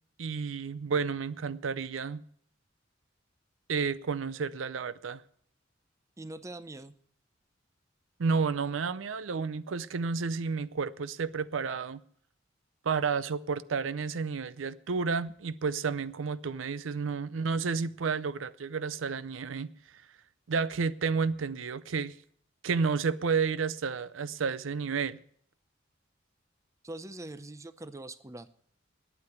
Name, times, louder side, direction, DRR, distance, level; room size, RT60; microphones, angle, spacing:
voice 1, 0.2-2.2 3.7-5.2 8.2-12.0 12.8-19.7 20.5-22.1 22.6-25.2, right 5 dB, 85° right, 0.5 m, -31 dB
voice 2, 6.2-6.9 26.8-28.5, right 2 dB, 15° right, 0.5 m, -43 dB
9.7 x 8.7 x 9.2 m
head